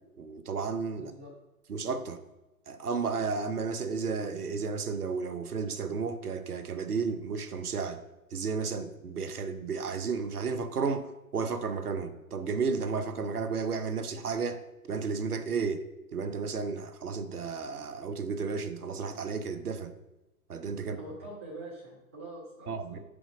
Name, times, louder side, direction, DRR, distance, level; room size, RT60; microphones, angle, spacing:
voice 1, 0.2-1.1 1.7-2.2 2.7-8.0 8.3-14.6 14.9-15.8 16.1-19.9 20.5-21.0 22.7-23.0, right 5 dB, 80° right, 0.8 m, -33 dB
voice 2, 0.9-1.3 20.8-23.0, right 1 dB, 10° right, 0.3 m, -45 dB
5.1 x 4.9 x 4.8 m
figure-of-eight pair, 115°, 44 cm